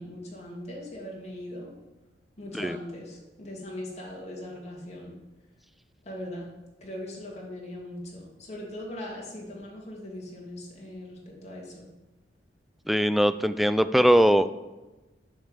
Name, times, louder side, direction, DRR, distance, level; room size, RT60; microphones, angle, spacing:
voice 1, 0.0-1.7 2.4-5.2 6.0-6.5 6.8-11.9, left 1 dB, 40° left, -3 dB, 2.6 m, -40 dB
voice 2, 12.9-14.5, equal, ahead, 11 dB, 0.3 m, -21 dB
9.8 x 5.2 x 7.4 m, 1.1 s
head